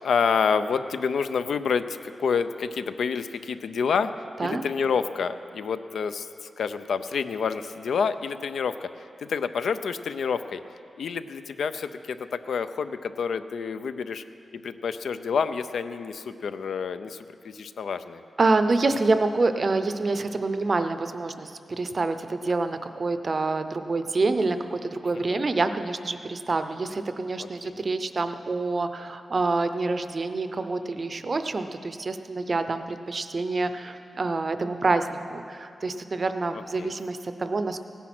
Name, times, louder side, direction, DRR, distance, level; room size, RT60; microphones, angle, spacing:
voice 1, 0.0-4.1 4.4-6.3 6.6-8.9 9.2-10.6 11.0-14.2 14.6-17.2 17.4-18.2 25.3-25.4 27.4-27.7 36.8-36.9, left 6 dB, 85° left, 11 dB, 0.5 m, -28 dB
voice 2, 18.4-37.8, right 3 dB, 35° right, 9 dB, 0.5 m, -27 dB
16.5 x 10.0 x 6.0 m, 2.5 s
wide cardioid pair, 175°, 0 cm